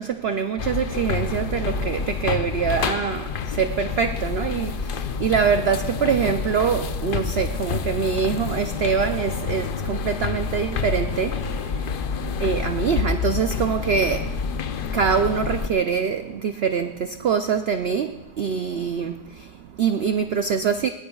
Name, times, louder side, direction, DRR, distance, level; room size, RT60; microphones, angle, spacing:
voice 1, 0.0-11.9 12.4-14.4 14.9-20.9, right 6 dB, 75° right, 8 dB, 0.5 m, -24 dB
sound 1, 0.6-15.7, left 5 dB, 80° left, 0.4 m, -28 dB
20.0 x 17.5 x 2.3 m, 1.0 s
omnidirectional pair, 1.7 m